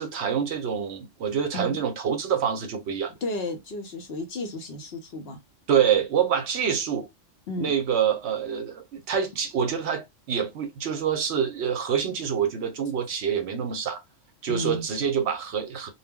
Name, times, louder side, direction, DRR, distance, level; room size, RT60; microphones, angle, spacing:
voice 1, 0.0-3.1 5.7-7.1 7.6-14.0 14.4-15.9, right 8 dB, 70° right, 0.8 m, -26 dB
voice 2, 3.2-5.4 7.5-7.7 14.5-14.8, left 2 dB, 60° left, 0.9 m, -32 dB
2.2 x 2.0 x 3.4 m
omnidirectional pair, 1.3 m